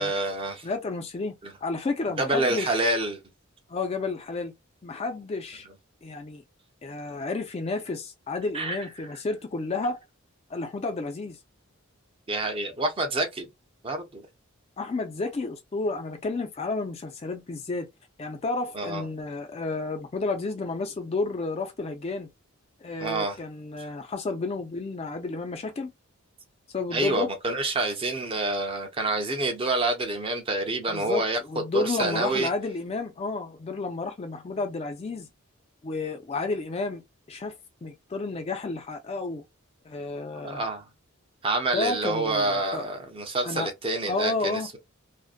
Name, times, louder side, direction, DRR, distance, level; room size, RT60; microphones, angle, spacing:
voice 1, 0.0-0.7 1.4-1.5 2.2-3.2 8.5-9.1 12.3-13.5 13.8-14.2 18.7-19.1 23.0-23.4 26.9-32.5 40.3-40.9 41.4-44.8, right 2 dB, 25° right, 0.5 m, -27 dB
voice 2, 0.6-1.3 1.6-2.9 3.7-4.5 4.8-5.7 6.0-6.4 6.8-10.0 10.5-11.4 14.8-17.9 18.2-22.3 22.8-25.9 26.7-27.3 30.9-35.3 35.8-37.0 37.3-37.5 37.8-39.4 39.9-40.6 41.7-42.8 43.4-43.7 44.1-44.7, left 3 dB, 30° left, 0.3 m, -31 dB
2.5 x 2.1 x 2.4 m
head